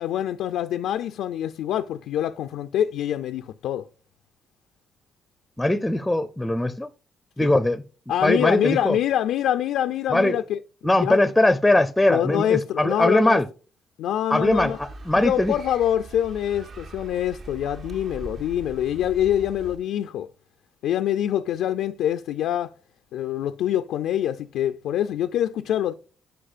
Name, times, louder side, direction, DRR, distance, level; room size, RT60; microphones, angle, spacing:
voice 1, 0.0-3.8 7.4-7.5 8.1-10.6 11.0-11.2 12.1-13.4 14.0-14.8 15.2-20.3 20.8-22.7 23.1-25.9, left 11 dB, 85° left, 0.3 m, -25 dB
voice 2, 5.6-6.9 7.4-7.8 8.2-9.0 10.1-10.4 10.8-13.5 14.3-15.6, left 1 dB, 10° left, 0.5 m, -21 dB
sound 1, 14.4-19.8, right 3 dB, 50° right, 0.8 m, -41 dB
10.0 x 5.0 x 2.5 m
cardioid pair, 90°, 0 cm